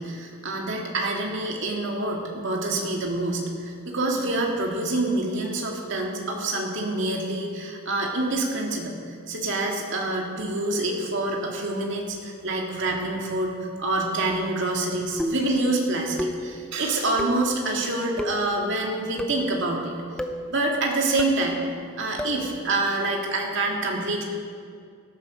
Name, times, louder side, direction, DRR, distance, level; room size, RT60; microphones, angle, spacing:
voice 1, 0.0-9.0 9.3-19.9 20.5-21.6 22.0-24.2, right 2 dB, 55° right, 0 dB, 2.3 m, -26 dB
sound 1, 15.2-15.6 16.2-16.6 17.2-17.5 18.2-18.5 19.2-19.5 20.2-20.5 21.2-21.4 22.2-22.5, equal, 5° left, 0.6 m, -30 dB
18.0 x 12.5 x 5.1 m, 2.3 s
head